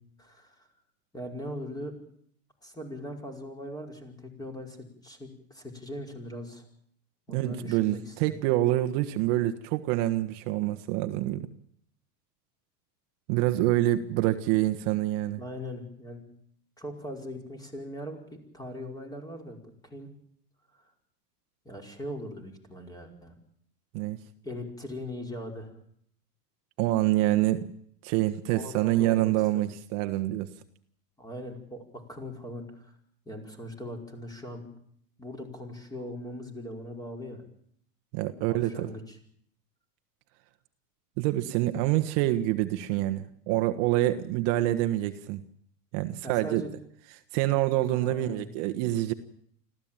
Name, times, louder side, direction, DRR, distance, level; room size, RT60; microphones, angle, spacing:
voice 1, 0.2-0.7 1.1-1.9 2.6-6.6 7.3-8.3 15.4-16.2 16.8-20.1 20.7-20.8 21.6-23.3 24.4-25.7 28.5-29.6 31.2-32.9 33.2-34.7 35.2-37.4 38.4-39.2 46.2-46.7 47.9-48.5, left 1 dB, 10° left, 4 dB, 5.1 m, -40 dB
voice 2, 7.3-11.5 13.3-15.4 23.9-24.2 26.8-27.7 28.0-30.5 38.1-38.9 41.2-45.4 45.9-46.6 47.3-49.1, right 15 dB, 50° right, 9 dB, 1.4 m, -26 dB
25.5 x 15.5 x 9.0 m, 0.65 s
supercardioid pair, 140°, 47 cm